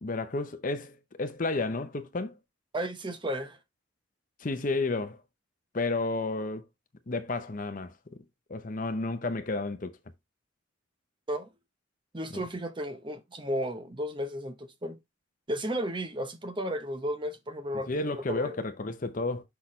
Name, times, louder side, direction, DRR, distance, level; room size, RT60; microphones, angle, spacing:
voice 1, 0.0-2.3 4.4-5.2 5.7-6.7 7.1-8.2 8.5-9.9 12.3-12.4 17.9-19.4, left 3 dB, 40° left, 0.6 m, -31 dB
voice 2, 2.7-3.6 11.3-11.5 12.1-15.0 15.5-18.6, equal, 25° right, 0.8 m, -34 dB
6.3 x 5.8 x 3.1 m
head